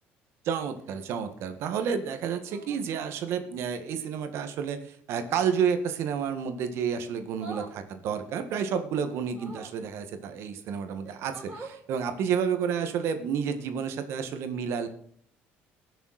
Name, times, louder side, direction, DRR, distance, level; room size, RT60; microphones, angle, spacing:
voice 1, 0.4-14.9, right 7 dB, 70° right, 8 dB, 1.7 m, -30 dB
sound 1, 0.7-1.2 2.4-2.8 5.1-5.5 7.3-7.8 9.3-9.8 10.6-10.7 11.0-11.8 13.4-13.6, right 3 dB, 30° right, 6.7 m, -46 dB
19.5 x 7.1 x 4.2 m, 0.62 s
cardioid pair, 110°, 5 cm